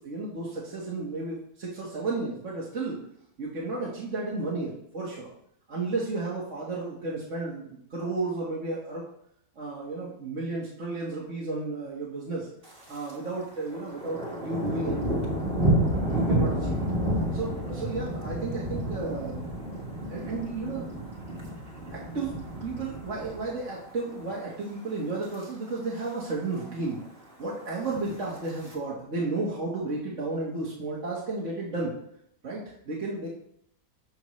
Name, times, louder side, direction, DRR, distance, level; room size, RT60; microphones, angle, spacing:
voice 1, 0.0-3.0 3.4-5.3 5.7-9.0 9.5-12.5 12.9-15.2 16.1-16.9 17.3-19.4 20.1-20.9 21.9-27.0 27.4-31.9 32.4-33.3, right 3 dB, 55° right, -5 dB, 1.7 m, -33 dB
Thunder, 12.6-13.2 13.5-23.8 24.2-24.5 25.0-25.4 25.7-25.8 26.0-26.1 26.4-27.0 27.8-28.7, right 1 dB, 35° right, 1.9 m, -30 dB
13.0 x 5.7 x 3.1 m, 0.72 s
omnidirectional pair, 1.6 m